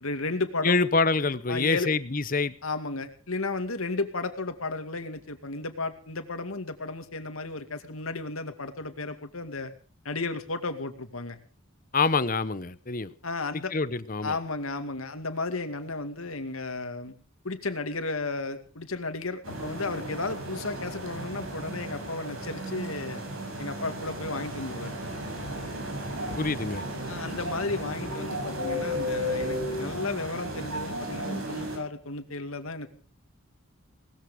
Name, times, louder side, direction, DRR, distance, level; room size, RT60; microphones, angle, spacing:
voice 1, 0.0-0.8 1.5-1.9 2.6-9.7 10.0-11.4 13.2-13.7 14.2-17.1 17.4-23.2 23.6-24.9 27.1-32.9, left 3 dB, 85° left, 2.3 m, -33 dB
voice 2, 0.6-2.5 11.9-13.1 13.7-14.4 26.4-26.8, left 3 dB, 40° left, 0.9 m, -26 dB
sound 1, 19.4-31.8, equal, 80° right, 7.3 m, -34 dB
19.5 x 14.0 x 5.2 m
head